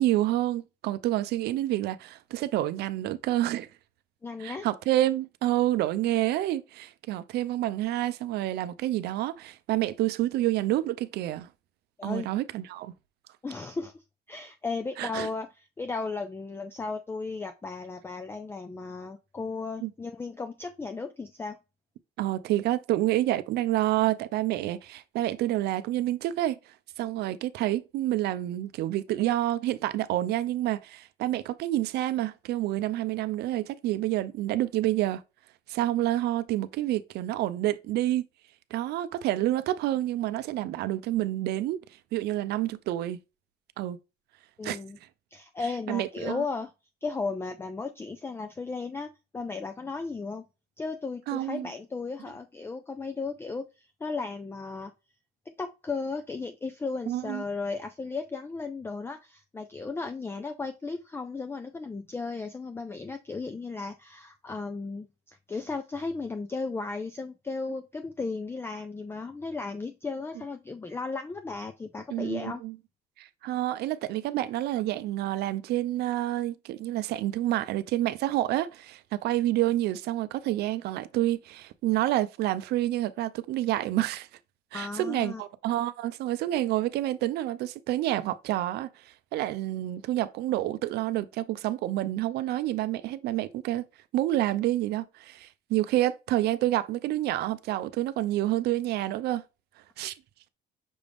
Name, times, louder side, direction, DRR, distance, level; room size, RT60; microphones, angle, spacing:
voice 1, 0.0-3.7 4.4-11.5 12.0-12.9 15.0-15.3 19.8-19.9 22.2-26.6 27.0-35.2 35.7-38.3 38.7-41.8 42.1-43.2 43.8-44.0 44.6-44.8 45.9-46.4 51.3-51.7 57.1-57.4 72.1-72.8 73.2-84.3 84.7-93.8 94.1-99.4 100.0-100.1, right 14 dB, 75° right, 0.5 m, -28 dB
voice 2, 4.2-4.7 12.0-12.3 13.4-14.0 14.3-21.6 44.6-45.0 45.3-46.7 47.0-50.5 50.8-54.9 55.5-72.6 84.7-85.4, left 4 dB, 15° left, 0.4 m, -35 dB
6.1 x 2.4 x 3.4 m
cardioid pair, 110°, 17 cm